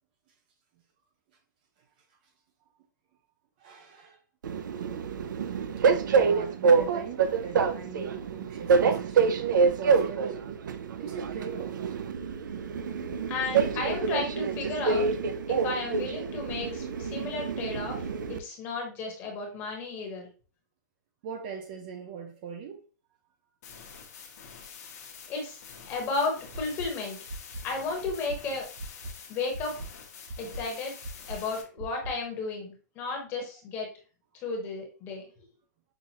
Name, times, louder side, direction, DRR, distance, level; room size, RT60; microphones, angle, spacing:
voice 1, 3.6-4.2 6.1-9.4 9.8-10.6 11.0-11.8 21.2-22.8, right 6 dB, 30° right, 0.4 m, -41 dB
Train, 4.4-18.4, right 5 dB, 90° right, 0.5 m, -27 dB
voice 2, 13.3-15.1 15.5-20.3 25.3-25.6 25.8-27.2 27.6-28.7 29.3-29.7 30.4-30.9 31.3-33.9 34.4-35.2, left 3 dB, 20° left, 1.0 m, -33 dB
sound 1, 23.6-31.6, left 6 dB, 55° left, 1.0 m, -47 dB
sound 2, 26.5-26.9 27.3-27.6 28.0-28.4 28.8-29.1 29.5-29.9 30.3-30.6 31.0-31.4 31.8-32.1, right 2 dB, 55° right, 0.8 m, -38 dB
5.7 x 2.4 x 2.8 m
hypercardioid pair, 170°, 10 cm